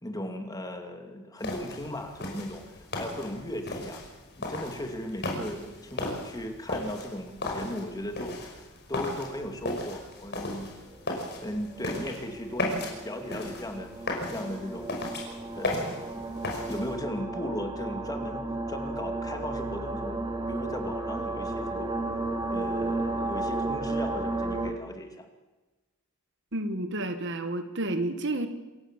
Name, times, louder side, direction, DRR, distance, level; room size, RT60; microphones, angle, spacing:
voice 1, 0.0-4.0 4.4-10.8 11.4-13.9 14.3-15.1 15.5-16.3 16.7-22.0 22.5-25.3, left 1 dB, 15° left, 5 dB, 2.4 m, -37 dB
sound 1, 1.4-17.0, left 2 dB, 50° left, 5.6 m, -36 dB
sound 2, 9.3-9.4 10.9-24.7, right 2 dB, 20° right, 2.3 m, -33 dB
voice 2, 26.5-28.5, right 1 dB, 60° right, 9 dB, 1.8 m, -30 dB
27.5 x 15.5 x 7.4 m, 1.1 s
head